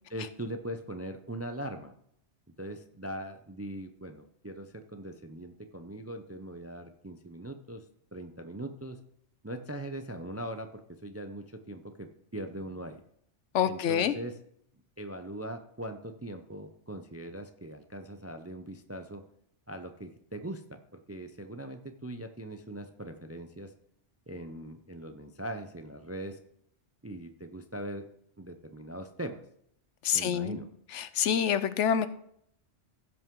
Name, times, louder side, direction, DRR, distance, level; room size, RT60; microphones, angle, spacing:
voice 1, 0.1-1.9 2.6-7.8 8.1-9.0 9.4-13.0 13.6-14.3 15.0-19.2 19.7-23.7 24.3-26.4 27.0-28.1 28.4-29.4 30.1-30.7, right 1 dB, 25° right, 7 dB, 0.3 m, -41 dB
voice 2, 13.5-14.1 30.0-30.6 30.9-32.1, left 8 dB, 80° left, 13 dB, 1.0 m, -27 dB
16.0 x 5.6 x 3.7 m, 0.69 s
omnidirectional pair, 1.2 m